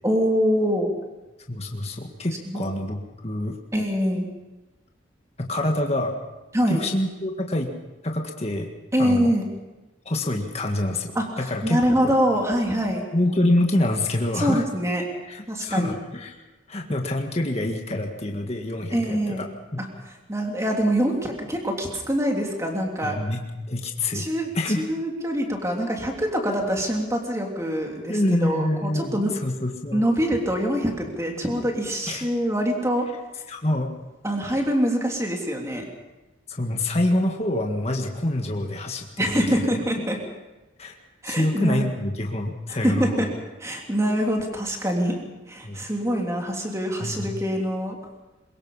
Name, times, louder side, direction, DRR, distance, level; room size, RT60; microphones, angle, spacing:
voice 1, 0.0-0.9 2.4-2.7 3.7-4.3 6.5-6.8 8.9-9.5 11.1-11.3 11.6-13.1 14.3-15.0 15.5-16.0 18.9-19.4 19.8-19.9 20.3-23.2 24.1-24.5 24.8-29.3 29.9-33.1 34.2-35.9 39.2-40.2 41.2-41.9 42.7-43.3 43.6-45.2 45.5-48.0, equal, 15° right, 1 dB, 3.3 m, -24 dB
voice 2, 1.5-3.6 5.4-6.2 6.7-7.7 8.0-8.7 9.0-9.3 10.1-12.2 13.1-14.6 15.3-16.4 16.7-19.5 19.7-19.8 23.0-24.3 24.5-24.8 28.1-30.0 32.1-32.3 33.5-33.9 36.5-39.6 40.8-40.9 41.3-43.3 45.6-45.8 47.0-47.3, left 1 dB, 30° left, 2 dB, 1.8 m, -26 dB
23.0 x 21.5 x 5.7 m, 1.1 s
head